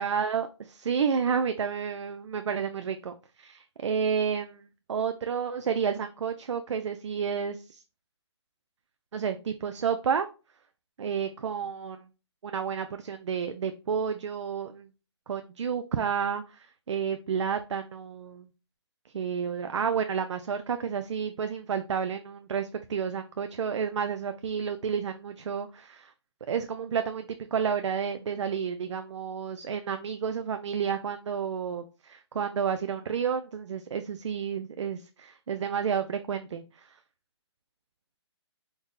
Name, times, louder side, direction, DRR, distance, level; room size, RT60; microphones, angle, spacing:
voice 1, 0.0-7.8 9.1-10.3 11.0-12.1 12.4-14.9 15.3-18.5 19.1-26.1 26.5-37.0, right 7 dB, 85° right, 8 dB, 0.4 m, -31 dB
4.0 x 2.0 x 3.6 m, 0.33 s
hypercardioid pair, 160°, 15 cm